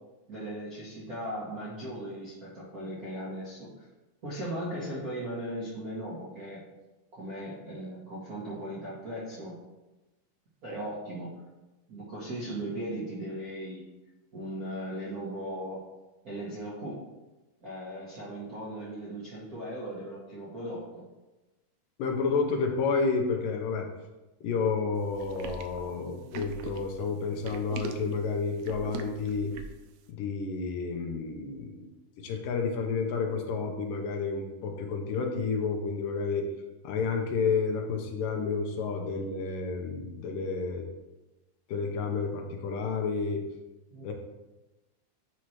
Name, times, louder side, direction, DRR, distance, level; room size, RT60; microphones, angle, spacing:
voice 1, 0.3-3.8 4.2-6.6 7.1-9.6 10.6-11.4 11.9-13.9 14.3-15.8 16.2-17.0 17.6-21.1 43.9-44.1, right 1 dB, 60° right, -7 dB, 0.9 m, -38 dB
voice 2, 22.0-23.9 24.4-29.5 30.1-31.9 32.2-36.5 36.8-40.8 41.7-43.4 44.0-44.1, left 4 dB, 90° left, 3 dB, 2.5 m, -30 dB
sound 1, 25.1-29.9, right 6 dB, 85° right, 1.6 m, -41 dB
9.1 x 3.1 x 4.3 m, 1.1 s
omnidirectional pair, 3.7 m